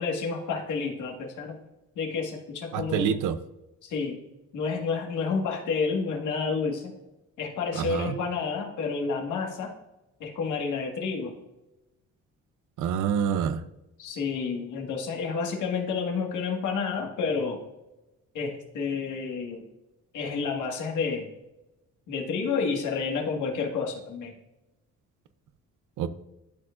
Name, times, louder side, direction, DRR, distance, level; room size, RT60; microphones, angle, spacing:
voice 1, 0.0-1.6 1.9-3.1 3.8-4.2 4.5-6.9 7.4-9.7 10.2-11.3 14.0-17.6 18.3-19.6 20.1-21.3 22.1-24.3, left 5 dB, 80° left, 1 dB, 1.7 m, -30 dB
voice 2, 2.7-3.4 7.8-8.1 12.8-13.6 26.0-26.1, right 8 dB, 85° right, 12 dB, 0.6 m, -26 dB
12.0 x 4.8 x 2.5 m, 0.95 s
cardioid pair, 90°, 30 cm